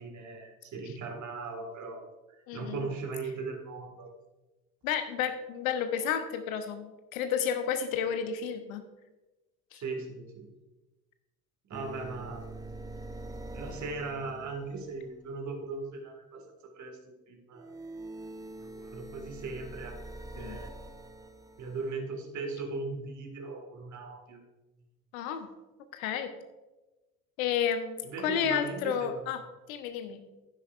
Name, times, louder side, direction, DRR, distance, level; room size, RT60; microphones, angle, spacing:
voice 1, 0.0-2.0 2.3-4.1 9.7-10.5 11.7-12.5 13.5-16.4 16.8-17.7 18.5-20.0 20.4-20.7 21.6-24.4 28.0-29.3, right 3 dB, 40° right, 4 dB, 1.9 m, -39 dB
voice 2, 2.5-2.9 4.8-8.8 9.7-9.8 20.4-20.6 25.1-25.5 25.9-26.3 27.4-30.2, left 8 dB, 65° left, 9 dB, 1.1 m, -31 dB
sound 1, 11.7-15.2 17.5-21.9, right 2 dB, 10° right, 0.7 m, -44 dB
12.0 x 10.0 x 2.5 m, 1.1 s
figure-of-eight pair, 60°, 45 cm